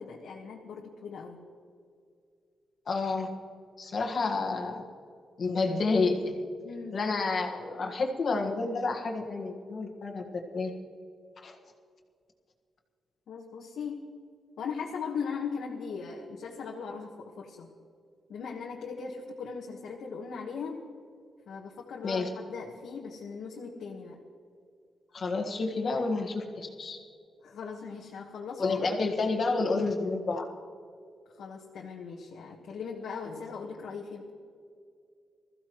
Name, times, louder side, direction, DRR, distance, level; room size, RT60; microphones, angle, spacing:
voice 1, 0.0-1.4 6.6-7.0 13.3-14.1 14.6-17.7 18.3-20.8 21.5-24.2 27.4-28.9 31.3-34.3, left 5 dB, 80° left, -2 dB, 1.4 m, -39 dB
voice 2, 2.9-3.3 3.8-4.8 5.4-6.3 6.9-10.2 10.5-10.7 11.4-11.6 22.0-22.3 25.1-27.0 28.6-30.4 33.3-33.4, left 3 dB, 45° left, 2 dB, 1.6 m, -29 dB
21.0 x 14.5 x 3.1 m, 2.3 s
wide cardioid pair, 140°, 0 cm